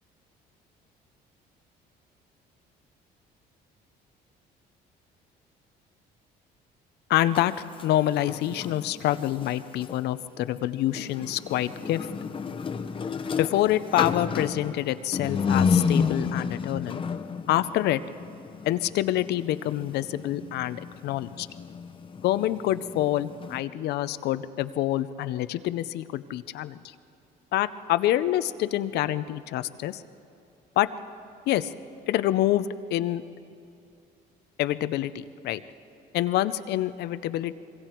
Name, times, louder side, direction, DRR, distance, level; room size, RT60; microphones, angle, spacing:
voice 1, 7.1-7.5 7.8-12.0 13.4-17.0 17.5-18.0 18.6-21.5 22.2-26.8 27.5-30.0 30.8-30.9 31.5-31.7 32.1-33.2 34.6-35.6 36.1-37.6, left 13 dB, 75° left, 14 dB, 0.7 m, -26 dB
sound 1, 7.2-10.0 10.9-23.6, left 6 dB, 30° left, 1.0 m, -31 dB
25.5 x 23.0 x 4.5 m, 2.7 s
cardioid pair, 110°, 17 cm